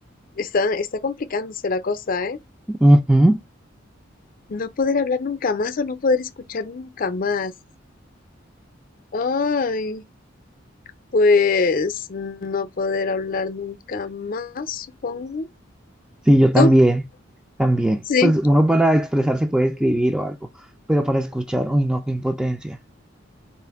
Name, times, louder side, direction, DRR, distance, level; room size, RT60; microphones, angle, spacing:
voice 1, 0.4-2.4 4.5-7.5 9.1-10.0 11.1-15.5 16.5-16.7 18.1-18.3, left 4 dB, 45° left, 0.5 m, -23 dB
voice 2, 2.7-3.4 16.3-17.0 17.6-20.4 20.9-22.8, right 1 dB, 5° right, 0.3 m, -18 dB
4.2 x 2.5 x 3.4 m
head